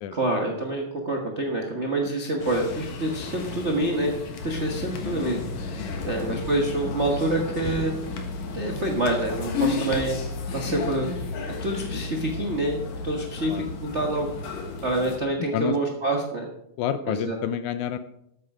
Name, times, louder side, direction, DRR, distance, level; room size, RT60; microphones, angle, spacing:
voice 1, 0.1-4.1 4.4-5.4 6.0-7.9 8.5-10.2 10.5-11.1 11.6-14.3 14.8-16.5 17.0-17.4, right 1 dB, 65° right, 0 dB, 0.6 m, -27 dB
sound 1, 2.4-15.2, left 3 dB, 60° left, 2.6 m, -32 dB
voice 2, 5.8-6.2 13.5-13.6 15.5-15.8 16.8-18.0, left 9 dB, 80° left, 11 dB, 1.8 m, -29 dB
13.0 x 8.8 x 4.9 m, 0.81 s
omnidirectional pair, 3.8 m